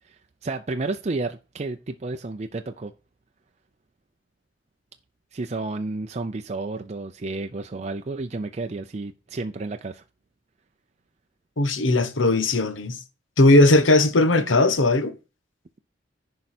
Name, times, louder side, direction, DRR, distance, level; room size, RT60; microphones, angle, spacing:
voice 1, 0.0-2.9 5.3-10.0 14.4-14.5, right 3 dB, 35° right, 0.5 m, -31 dB
voice 2, 11.6-13.0 13.4-15.1, left 2 dB, 85° left, 1.1 m, -18 dB
10.5 x 4.7 x 4.2 m
head